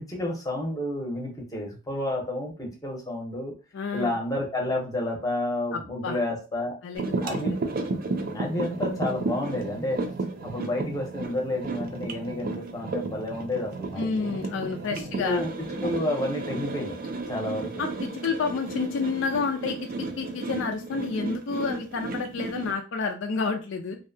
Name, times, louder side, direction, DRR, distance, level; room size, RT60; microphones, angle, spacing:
voice 1, 0.1-3.5 3.9-6.8 7.2-7.6 8.3-10.0 10.4-14.3 15.2-17.0 17.3-17.8, left 1 dB, 20° left, 0 dB, 0.7 m, -30 dB
voice 2, 3.7-4.1 5.7-6.2 6.8-7.4 14.0-15.4 17.8-24.0, left 4 dB, 70° left, 3 dB, 0.4 m, -30 dB
sound 1, 7.0-22.7, right 3 dB, 45° right, 0.4 m, -33 dB
2.6 x 2.1 x 2.6 m, 0.33 s
head